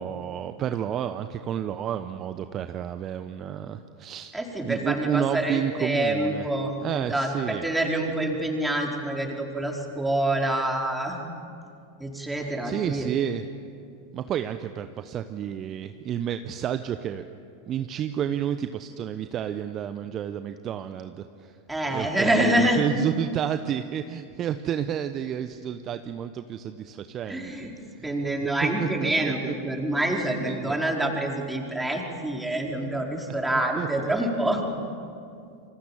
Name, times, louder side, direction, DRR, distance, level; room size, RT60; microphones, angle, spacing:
voice 1, 0.0-4.3 4.6-6.5 6.8-7.6 12.4-13.4 14.1-17.2 17.7-21.6 21.9-28.1 28.6-29.1 30.5-30.8 33.1-33.3 33.8-34.1, right 9 dB, 35° right, 9 dB, 1.0 m, -30 dB
voice 2, 4.3-11.2 12.0-13.1 21.7-22.8 27.3-27.7 28.0-34.6, right 1 dB, 5° right, 0 dB, 4.9 m, -26 dB
29.0 x 25.5 x 7.6 m, 2.5 s
figure-of-eight pair, 90°, 0 cm